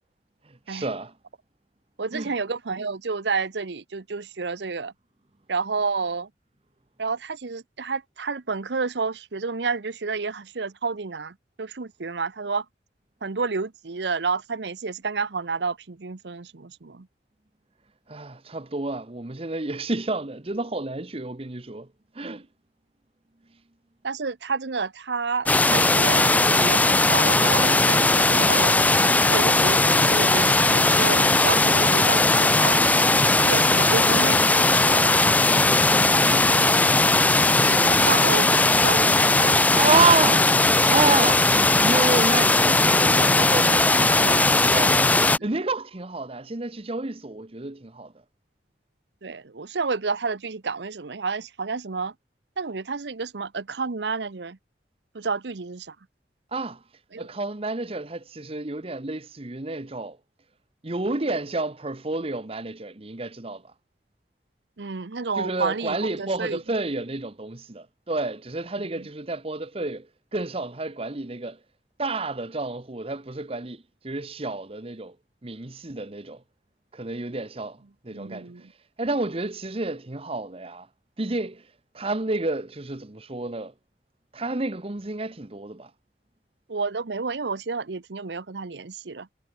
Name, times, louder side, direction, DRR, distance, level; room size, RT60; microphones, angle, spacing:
voice 1, 0.5-1.1 2.1-2.3 18.1-21.9 22.1-22.4 35.9-36.8 39.5-41.5 41.8-45.0 45.4-48.1 56.5-56.8 57.2-60.2 60.8-63.7 65.4-70.1 70.3-71.6 72.0-75.1 75.4-76.4 76.9-78.5 79.0-80.9 81.2-81.6 81.9-83.7 84.3-85.9, right 3 dB, 35° right, 1.1 m, -29 dB
voice 2, 2.0-4.9 5.5-6.3 7.0-12.6 13.2-17.1 22.2-22.3 24.0-28.8 29.3-32.8 33.4-35.2 37.6-38.5 38.8-39.8 44.2-44.5 49.2-52.1 52.6-54.6 55.1-55.9 57.1-57.3 64.8-66.6 69.0-69.1 78.1-78.7 86.7-89.3, right 4 dB, 75° right, 0.8 m, -30 dB
sound 1, 25.5-45.4, left 2 dB, 10° left, 0.5 m, -19 dB
head